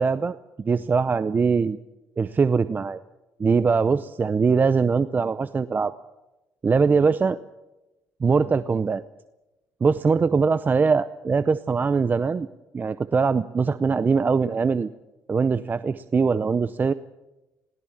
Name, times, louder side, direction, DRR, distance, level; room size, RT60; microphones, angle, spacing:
voice 1, 0.0-1.8 2.2-3.0 3.4-5.9 6.6-7.4 8.2-9.0 9.8-12.5 12.7-14.9 15.3-16.9, right 5 dB, 30° right, 13 dB, 0.7 m, -22 dB
21.5 x 17.0 x 7.3 m, 1.0 s
cardioid pair, 95°, 6 cm